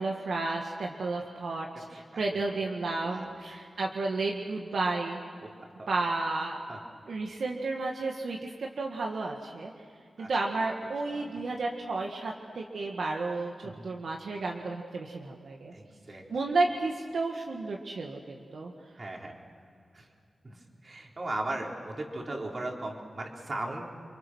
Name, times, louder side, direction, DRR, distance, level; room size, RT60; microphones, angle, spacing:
voice 1, 0.0-5.2 5.9-6.6 7.1-9.7 10.2-15.7 16.3-18.7, right 3 dB, 80° right, 0 dB, 1.8 m, -32 dB
voice 2, 2.1-2.5 3.0-3.3 5.4-5.5 5.8-5.9 6.7-6.8 10.2-10.3 11.1-11.4 13.6-13.9 15.7-16.2 19.0-19.4 19.9-20.1 20.4-23.9, right 2 dB, 45° right, 0 dB, 4.1 m, -38 dB
29.5 x 24.0 x 6.3 m, 2.3 s
wide cardioid pair, 75°, 0 cm